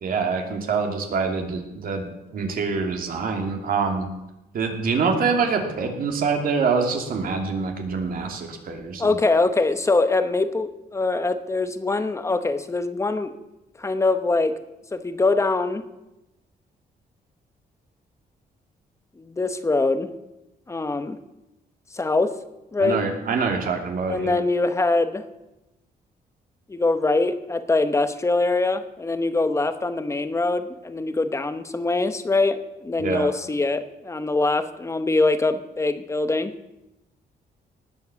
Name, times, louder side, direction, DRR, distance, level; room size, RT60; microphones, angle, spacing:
voice 1, 0.0-2.1 2.3-4.1 4.5-9.1 22.8-24.3 33.0-33.3, right 5 dB, 60° right, 3 dB, 2.7 m, -25 dB
voice 2, 9.0-13.3 13.8-14.6 14.9-15.8 19.2-20.1 20.7-21.2 21.9-22.4 22.7-23.0 24.1-25.2 26.7-36.5, left 3 dB, 15° left, 10 dB, 1.0 m, -23 dB
19.0 x 7.7 x 7.0 m, 0.94 s
wide cardioid pair, 150°, 16 cm